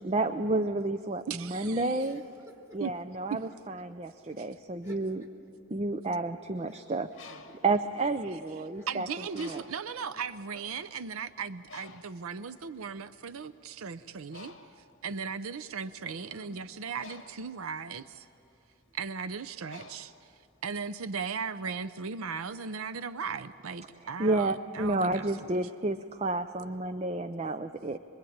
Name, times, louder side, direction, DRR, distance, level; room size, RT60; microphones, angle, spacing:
voice 1, 0.0-2.2 2.7-5.2 5.7-7.1 7.6-9.1 9.4-9.6 24.2-28.0, right 2 dB, 30° right, 10 dB, 0.5 m, -30 dB
voice 2, 1.3-2.0 2.8-2.9 4.4-4.5 8.9-14.5 15.0-18.3 18.9-20.3 20.6-25.5, right 5 dB, 85° right, 12 dB, 0.6 m, -37 dB
voice 3, 2.0-2.8 4.8-5.3 6.7-6.8 7.1-7.6 8.8-8.9 10.0-10.2 10.5-10.7 16.2-17.0 18.9-19.0 25.8-26.1 26.6-26.7, left 1 dB, 15° right, -1 dB, 3.8 m, -55 dB
Bird, 6.9-8.8 9.3-10.0 10.7-10.8 11.1-20.8, left 4 dB, 60° left, 1.6 m, -52 dB
26.0 x 22.5 x 8.7 m, 2.7 s
head